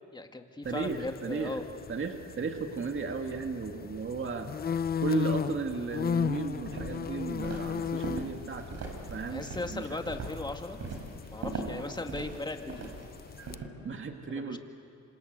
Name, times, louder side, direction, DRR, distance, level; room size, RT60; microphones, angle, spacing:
voice 1, 0.1-1.7 9.3-10.8 11.3-13.0 14.3-14.6, left 2 dB, 15° left, 5 dB, 2.1 m, -37 dB
sound 1, 0.6-13.6, left 7 dB, 30° left, 0.6 m, -37 dB
voice 2, 0.6-1.6 1.9-4.5 5.0-8.8 9.1-10.0 12.7-12.8 13.8-14.6, right 4 dB, 40° right, 4 dB, 2.2 m, -35 dB
Walk footsteps, 6.6-13.7, right 3 dB, 60° right, 5.0 m, -41 dB
27.0 x 26.0 x 8.1 m, 2.4 s
cardioid pair, 90°, 30 cm